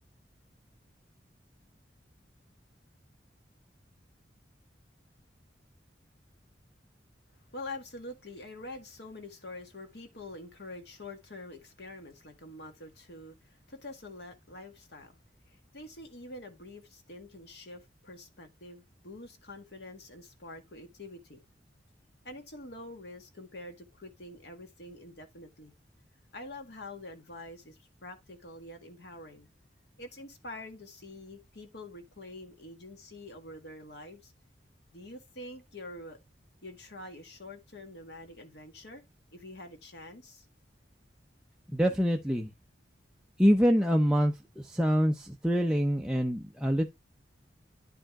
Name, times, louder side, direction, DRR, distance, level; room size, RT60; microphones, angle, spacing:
voice 1, 7.3-15.1 15.5-21.4 22.2-25.7 26.3-29.5 30.0-34.3 34.9-36.2 36.6-39.0 39.3-40.4, left 2 dB, 65° left, 1.8 m, -46 dB
voice 2, 41.7-42.5 43.4-46.9, equal, 5° right, 0.7 m, -25 dB
10.0 x 5.0 x 3.6 m
head